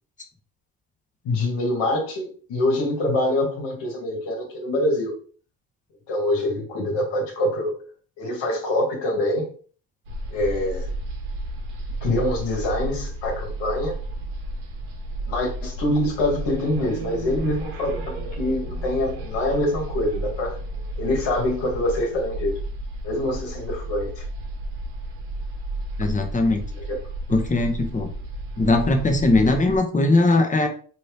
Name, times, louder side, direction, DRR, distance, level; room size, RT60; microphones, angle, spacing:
voice 1, 1.2-5.1 6.1-7.8 8.2-9.5 10.3-10.9 12.0-14.0 15.3-20.6 21.0-22.6 23.0-24.2 26.9-27.0, left 1 dB, 70° left, 0 dB, 1.3 m, -25 dB
sound 1, 10.0-29.8, right 1 dB, 90° right, 0.9 m, -32 dB
voice 2, 26.0-26.6 27.3-28.1 28.6-30.7, left 2 dB, 15° left, 5 dB, 0.7 m, -20 dB
2.8 x 2.7 x 3.3 m, 0.43 s
supercardioid pair, 80°, 44 cm